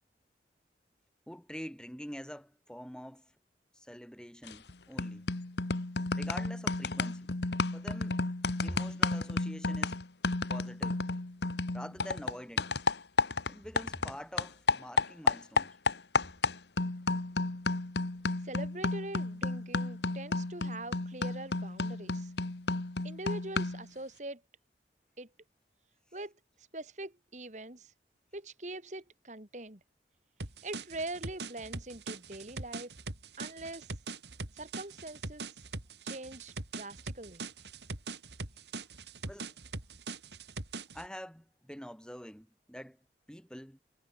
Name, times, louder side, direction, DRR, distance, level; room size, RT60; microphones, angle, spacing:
voice 1, 1.3-3.3 3.7-5.3 6.2-7.3 7.7-8.2 8.6-10.0 10.5-11.0 11.7-12.7 13.5-15.8 39.2-39.5 40.9-43.8, equal, 5° left, 4.3 m, -46 dB
sound 1, 4.5-4.7 5.0-14.1 14.4-23.9, left 3 dB, 80° left, 1.4 m, -32 dB
voice 2, 18.4-22.3 23.0-24.4 25.2-25.3 26.1-26.3 26.7-27.9 28.3-29.8 30.6-32.9 33.4-33.9 34.5-35.5 36.0-37.5, right 2 dB, 40° right, 2.6 m, -43 dB
sound 2, 30.4-41.1, right 3 dB, 80° right, 3.6 m, -42 dB
head